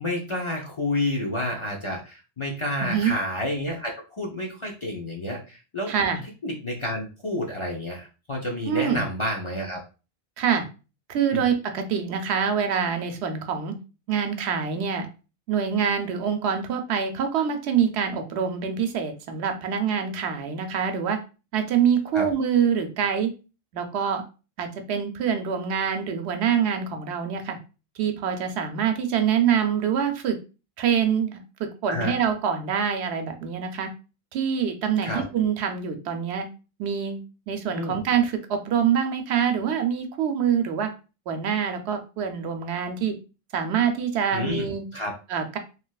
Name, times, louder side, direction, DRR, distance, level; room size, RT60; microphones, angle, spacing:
voice 1, 0.0-5.9 6.4-9.8 11.3-11.4 22.1-22.3 31.9-32.2 35.0-35.2 37.7-38.0 44.3-44.7 44.9-45.1, left 1 dB, 40° left, -2 dB, 0.5 m, -29 dB
voice 2, 2.8-3.1 5.9-6.2 8.7-9.0 10.4-10.6 11.1-13.7 14.1-15.1 15.5-21.2 21.5-23.3 23.7-24.2 24.6-27.6 28.0-30.4 30.8-33.9 34.3-36.5 36.8-37.2 37.5-40.9 41.3-43.1 43.5-44.9 45.3-45.6, right 7 dB, 80° right, 6 dB, 0.8 m, -25 dB
3.1 x 2.7 x 2.3 m, 0.32 s
omnidirectional pair, 1.1 m